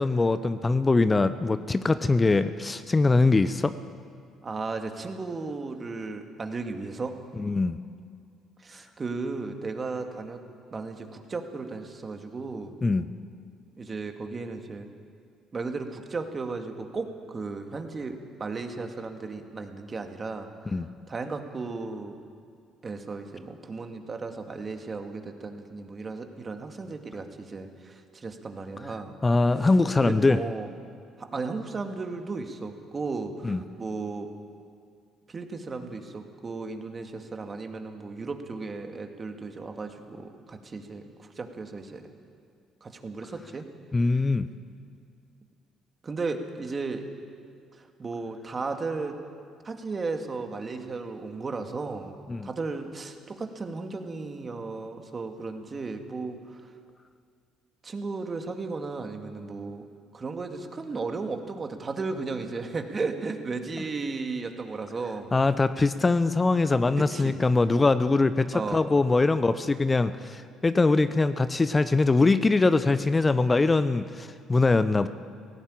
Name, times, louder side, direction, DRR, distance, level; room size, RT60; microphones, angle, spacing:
voice 1, 0.0-3.7 7.4-7.8 12.8-13.1 20.7-20.9 29.2-30.4 33.4-33.6 43.9-44.5 52.3-52.5 65.3-75.1, left 3 dB, 25° left, 13 dB, 0.7 m, -22 dB
voice 2, 4.4-7.2 8.6-10.4 10.7-12.7 13.8-14.9 15.5-20.8 21.1-22.2 22.8-29.1 30.0-30.7 31.2-34.3 35.3-42.1 42.8-43.7 46.0-47.0 47.8-49.2 49.6-52.1 52.4-56.7 57.8-59.8 60.1-65.3 67.0-67.4 68.5-68.8, right 3 dB, 35° right, 5 dB, 2.3 m, -35 dB
18.0 x 16.5 x 8.9 m, 2.2 s
hypercardioid pair, 50°, 0 cm